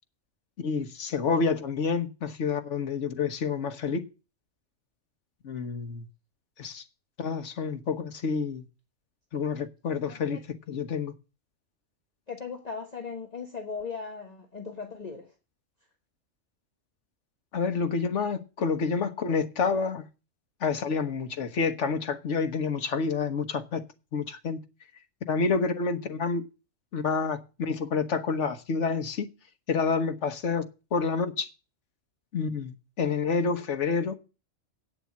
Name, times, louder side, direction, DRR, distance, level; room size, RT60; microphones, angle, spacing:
voice 1, 0.6-4.1 5.4-6.0 6.6-6.8 7.2-8.6 9.3-10.4 10.7-11.1 17.5-20.0 20.6-23.8 24.1-24.6 25.3-26.4 26.9-29.3 29.7-31.5 32.3-34.2, left 5 dB, 75° left, 1.5 m, -28 dB
voice 2, 10.1-10.4 12.3-15.3, left 5 dB, 35° left, 1.4 m, -38 dB
8.6 x 6.9 x 8.5 m
omnidirectional pair, 1.2 m